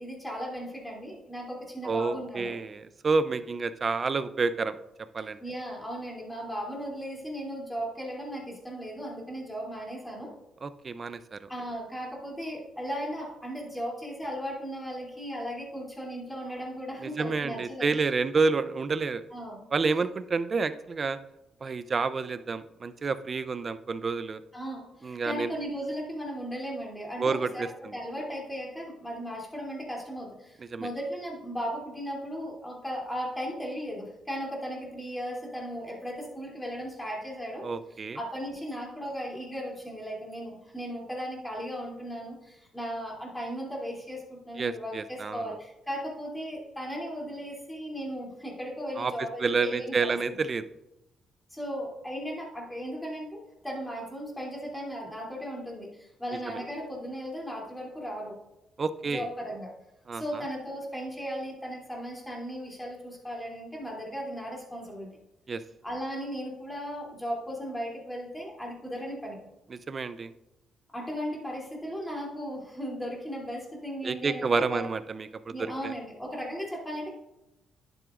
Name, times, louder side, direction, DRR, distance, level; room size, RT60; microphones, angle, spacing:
voice 1, 0.0-2.5 5.4-10.3 11.5-17.9 19.3-19.7 24.5-27.6 27.9-37.7 38.1-49.9 50.3-50.4 51.5-58.3 59.0-59.7 60.1-65.1 65.8-69.4 70.9-74.8 75.5-77.1, equal, 5° left, -3 dB, 2.9 m, -36 dB
voice 2, 1.8-4.7 5.1-5.4 10.6-11.4 17.0-19.2 19.7-21.2 21.6-24.4 25.0-25.5 27.2-27.9 30.7-30.9 37.6-38.2 44.6-45.6 49.0-50.6 56.5-56.6 58.8-59.3 60.1-60.4 65.5-65.6 69.7-70.3 74.0-75.5 75.8-75.9, right 4 dB, 40° right, 13 dB, 0.5 m, -29 dB
11.0 x 7.8 x 2.5 m, 0.89 s
cardioid pair, 90°, 0 cm